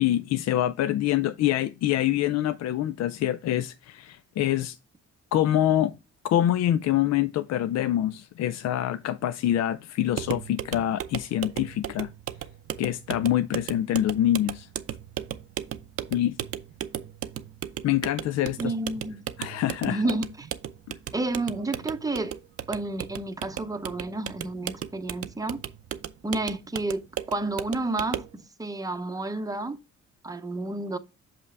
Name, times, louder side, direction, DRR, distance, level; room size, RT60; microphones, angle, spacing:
voice 1, 0.0-4.8 5.3-5.9 6.2-12.1 12.8-14.7 16.1-16.4 17.8-18.7 19.4-20.1, left 12 dB, 60° left, 0.4 m, -25 dB
sound 1, 10.1-28.4, right 10 dB, 50° right, 0.6 m, -36 dB
voice 2, 18.6-19.2 19.9-20.5 21.1-22.4 22.7-25.6 26.2-27.0 27.3-29.8 30.2-31.0, right 2 dB, 10° right, 0.8 m, -30 dB
Human voice, 21.1-22.8, left 1 dB, 85° left, 2.4 m, -54 dB
6.8 x 5.4 x 3.3 m
cardioid pair, 90°, 30 cm